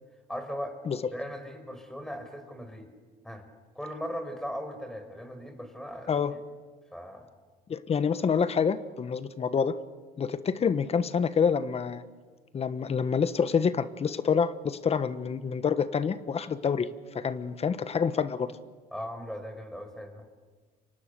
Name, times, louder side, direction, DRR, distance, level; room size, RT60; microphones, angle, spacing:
voice 1, 0.3-0.8 1.1-2.9 3.2-3.5 3.7-6.2 6.9-7.3 18.9-20.3, equal, 5° left, 6 dB, 4.9 m, -38 dB
voice 2, 7.7-9.7 10.2-12.0 12.5-16.9 17.1-18.5, left 6 dB, 35° left, 13 dB, 1.3 m, -27 dB
29.5 x 25.0 x 6.8 m, 1.5 s
cardioid pair, 110°, 17 cm